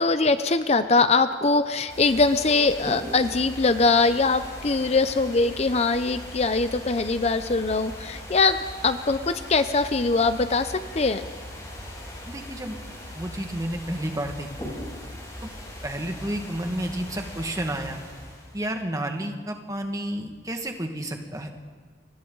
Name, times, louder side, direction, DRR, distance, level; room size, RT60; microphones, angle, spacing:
voice 1, 0.0-11.2, left 3 dB, 35° left, 11 dB, 0.6 m, -22 dB
sound 1, 1.9-18.7, left 1 dB, 20° left, 6.5 m, -39 dB
voice 2, 12.3-12.8 13.1-14.7 15.4-15.5 15.8-18.0 18.5-21.5, right 1 dB, 20° right, 4 dB, 1.8 m, -31 dB
29.5 x 25.0 x 4.0 m, 1.5 s
head